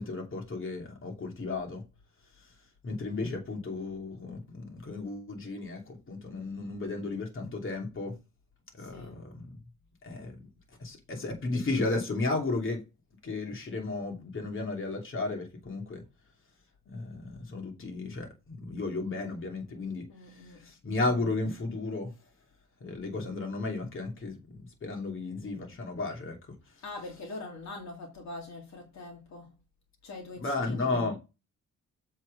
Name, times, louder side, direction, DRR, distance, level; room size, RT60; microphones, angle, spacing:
voice 1, 0.0-1.8 2.4-2.5 2.8-8.1 8.8-9.5 10.0-10.5 10.8-12.8 13.2-16.0 16.9-22.1 22.8-26.6 30.4-31.2, left 3 dB, 45° left, 2.8 m, -34 dB
voice 2, 8.8-9.3 20.1-20.7 23.0-23.1 26.8-29.6 30.0-31.1, left 3 dB, 65° left, 2.7 m, -43 dB
7.5 x 4.6 x 5.2 m
cardioid pair, 90°, 30 cm